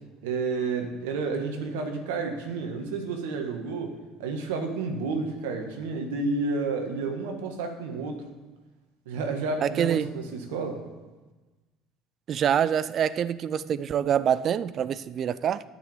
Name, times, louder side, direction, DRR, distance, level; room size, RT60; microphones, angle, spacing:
voice 1, 0.2-8.2 9.0-10.8, right 4 dB, 80° right, 4 dB, 1.7 m, -31 dB
voice 2, 9.6-10.1 12.3-15.6, right 9 dB, 50° right, 17 dB, 0.5 m, -25 dB
12.0 x 6.3 x 7.3 m, 1.2 s
hypercardioid pair, 65°, 0 cm